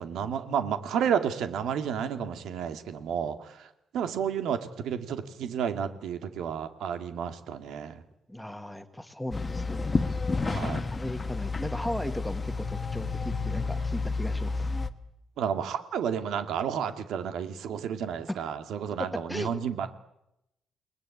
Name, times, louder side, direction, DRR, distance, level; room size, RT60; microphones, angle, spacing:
voice 1, 0.0-8.0 10.5-10.8 15.4-19.9, right 8 dB, 90° right, 8 dB, 2.3 m, -31 dB
voice 2, 8.3-10.0 10.9-14.7 19.3-19.5, left 1 dB, 5° left, 8 dB, 1.6 m, -37 dB
sound 1, 9.3-14.9, left 3 dB, 20° left, 1.3 m, -30 dB
29.0 x 20.5 x 8.7 m, 0.87 s
cardioid pair, 165°, 0 cm